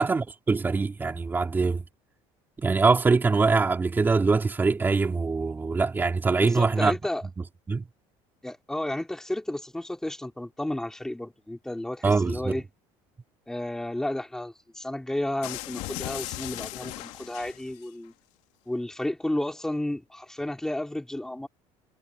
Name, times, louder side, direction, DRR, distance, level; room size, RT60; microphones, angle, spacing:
voice 1, 0.0-1.8 2.6-6.9 7.7-7.9 12.0-12.6, right 4 dB, 15° right, 3.2 m, -23 dB
voice 2, 6.4-7.3 8.4-12.6 13.5-18.1 18.7-21.5, left 1 dB, 5° left, 3.4 m, -32 dB
sound 1, 15.4-17.9, left 18 dB, 70° left, 2.5 m, -37 dB
cardioid pair, 145°, 12 cm